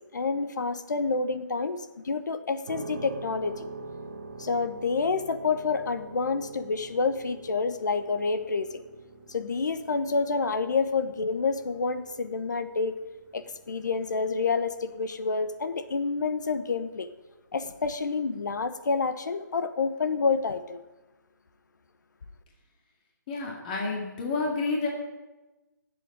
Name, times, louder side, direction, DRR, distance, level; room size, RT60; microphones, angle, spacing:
voice 1, 0.1-3.7 4.4-8.8 9.3-13.0 13.3-17.1 17.5-20.8, left 4 dB, 65° left, 11 dB, 1.1 m, -28 dB
sound 1, 2.7-17.3, right 3 dB, 35° right, 1.5 m, -45 dB
voice 2, 23.3-24.9, left 3 dB, 25° left, 0 dB, 2.2 m, -29 dB
11.5 x 7.7 x 9.0 m, 1.1 s
hypercardioid pair, 165°, 11 cm